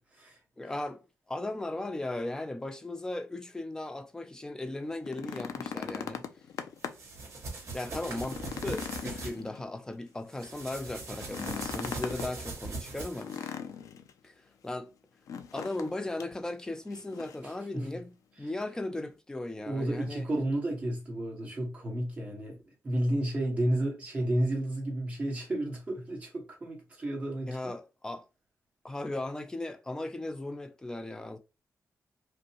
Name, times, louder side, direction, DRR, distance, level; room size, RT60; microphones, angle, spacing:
voice 1, 0.6-1.0 1.3-6.2 7.7-13.3 14.2-14.9 15.5-20.3 27.5-28.2 28.8-31.4, left 2 dB, 10° left, 0.4 m, -37 dB
sound 1, 4.9-7.2 7.6-7.7 8.1-10.0 11.2-12.3 13.2-14.1 15.3-15.9 16.2-16.3 16.9-17.5 18.6-18.7, left 7 dB, 90° left, 0.4 m, -39 dB
sound 2, 6.8-9.3 10.3-13.5, right 3 dB, 50° right, 2.0 m, -40 dB
voice 2, 17.4-17.9 19.7-22.6 22.8-27.6, right 1 dB, 25° right, 1.4 m, -32 dB
5.1 x 2.2 x 2.8 m
wide cardioid pair, 175°, 6 cm